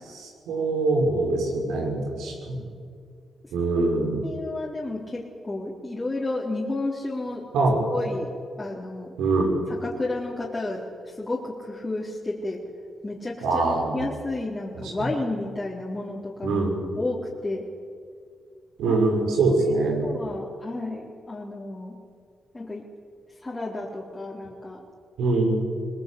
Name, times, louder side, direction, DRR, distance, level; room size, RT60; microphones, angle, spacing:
voice 1, 0.1-2.6 3.5-4.2 7.5-7.8 9.2-9.5 13.4-14.0 14.7-15.1 16.4-16.8 18.8-20.0 25.2-25.6, right 3 dB, 90° right, 1 dB, 5.8 m, -24 dB
voice 2, 4.2-7.4 7.9-8.3 8.6-9.1 9.7-12.6 13.0-16.6 17.0-17.7 18.9-19.0 19.6-22.0 22.5-22.8 23.4-24.8, left 2 dB, 25° left, -5 dB, 3.9 m, -32 dB
21.5 x 20.5 x 8.6 m, 2.2 s
cardioid pair, 65°, 0 cm